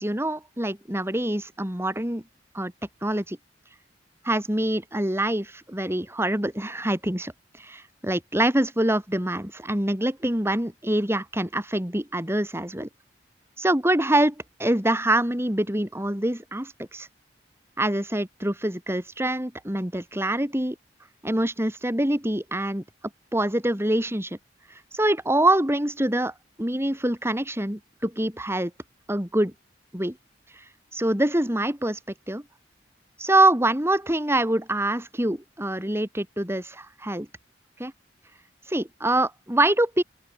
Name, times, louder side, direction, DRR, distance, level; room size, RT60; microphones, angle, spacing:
voice 1, 0.0-2.2 2.5-2.7 3.0-3.4 4.2-7.3 7.6-12.9 13.6-17.1 17.8-20.7 21.2-22.8 23.3-24.4 24.9-28.7 29.1-29.5 29.9-30.2 30.9-32.0 32.3-32.4 33.2-37.3 37.8-37.9 38.7-40.0, right 1 dB, 15° right, 3.1 m, -25 dB
open air
head